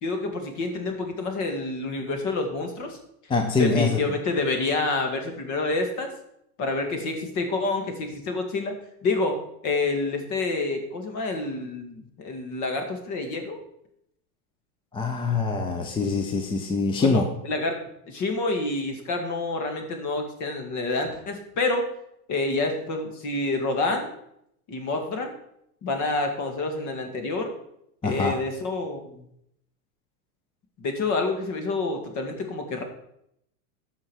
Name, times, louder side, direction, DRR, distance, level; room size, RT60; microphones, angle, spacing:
voice 1, 0.0-3.0 3.6-6.1 6.6-8.8 9.0-13.6 17.0-17.8 18.1-21.9 22.3-24.1 24.7-25.3 25.8-27.5 28.0-29.2 30.8-32.8, left 3 dB, 40° left, 5 dB, 2.1 m, -28 dB
voice 2, 3.3-4.0 14.9-17.3 28.0-28.3, left 4 dB, 10° left, 5 dB, 0.6 m, -24 dB
13.5 x 5.7 x 4.7 m, 0.75 s
supercardioid pair, 125°, 45 cm